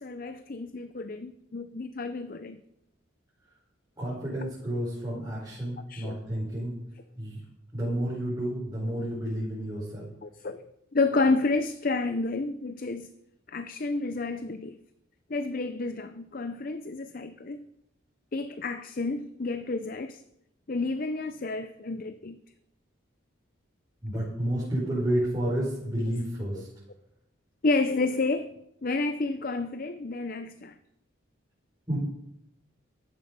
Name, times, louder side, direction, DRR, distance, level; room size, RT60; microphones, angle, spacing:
voice 1, 0.0-2.6 5.9-6.2 10.2-10.6 10.9-13.1 13.5-14.8 15.3-17.7 18.3-20.2 20.7-22.4 26.5-26.7 27.6-28.5 28.8-30.8, left 3 dB, 45° left, 11 dB, 0.6 m, -30 dB
voice 2, 4.0-6.7 7.2-7.4 7.7-10.1 24.0-26.7 31.9-32.0, right 1 dB, 20° right, -8 dB, 5.3 m, -30 dB
15.5 x 11.0 x 5.3 m, 0.80 s
head